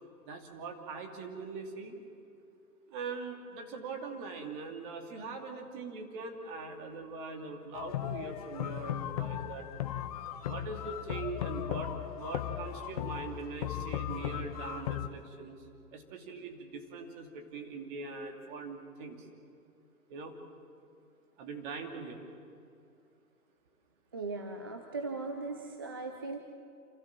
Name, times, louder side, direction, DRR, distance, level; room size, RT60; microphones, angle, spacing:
voice 1, 0.3-2.0 2.9-9.6 10.4-19.3 20.1-20.4 21.4-22.2, right 4 dB, 35° right, 3 dB, 2.8 m, -42 dB
sound 1, 7.7-15.1, left 11 dB, 25° left, 0.6 m, -37 dB
voice 2, 24.1-26.4, right 3 dB, 15° right, 5 dB, 0.4 m, -38 dB
28.0 x 14.5 x 7.4 m, 2.5 s
hypercardioid pair, 135°, 45 cm